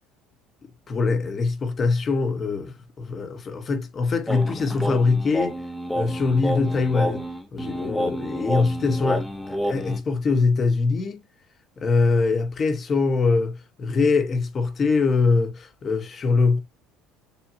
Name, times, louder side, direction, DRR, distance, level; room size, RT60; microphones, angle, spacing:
voice 1, 0.9-5.5 5.9-7.2 7.5-11.2 11.8-16.6, left 4 dB, 30° left, 1.1 m, -23 dB
sound 1, 4.3-10.0, equal, ahead, 0.8 m, -29 dB
7.0 x 2.7 x 2.7 m
cardioid pair, 125°, 0 cm